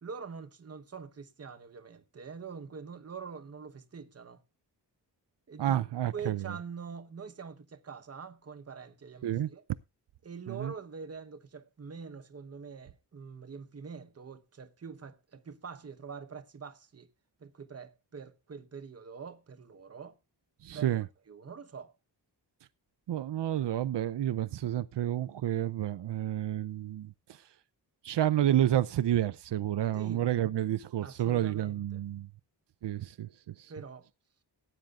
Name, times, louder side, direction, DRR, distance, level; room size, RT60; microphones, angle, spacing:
voice 1, 0.0-4.4 5.5-5.8 6.1-9.6 10.2-17.1 17.4-20.2 20.7-21.0 21.3-21.9 29.9-30.3 31.0-32.0 33.7-34.1, right 5 dB, 35° right, 1.1 m, -44 dB
voice 2, 5.6-6.6 9.2-9.5 10.5-10.7 20.6-21.1 23.1-27.4 28.0-32.3 32.8-33.7, right 12 dB, 90° right, 0.7 m, -30 dB
18.0 x 9.1 x 2.4 m
wide cardioid pair, 160°, 41 cm